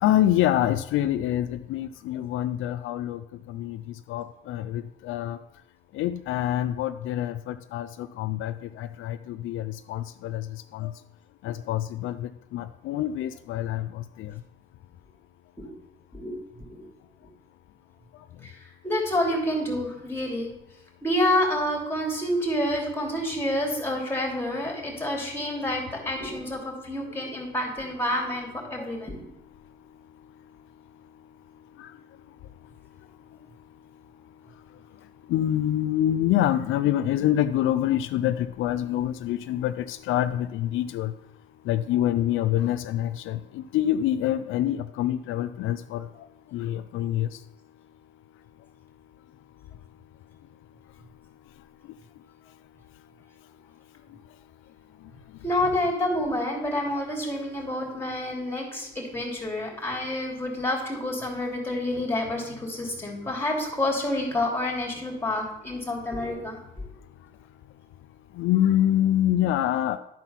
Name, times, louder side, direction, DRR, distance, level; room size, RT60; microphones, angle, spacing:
voice 1, 0.0-3.2 3.5-3.8 4.1-5.4 5.9-10.9 11.4-14.3 31.8-31.9 35.3-41.1 41.7-46.1 46.5-47.3 68.4-70.0, left 12 dB, 85° left, 11 dB, 0.4 m, -26 dB
voice 2, 18.8-20.5 21.0-29.3 55.4-66.6, left 1 dB, 10° left, 0 dB, 2.9 m, -28 dB
11.0 x 4.5 x 5.8 m, 0.87 s
cardioid pair, 90°, 20 cm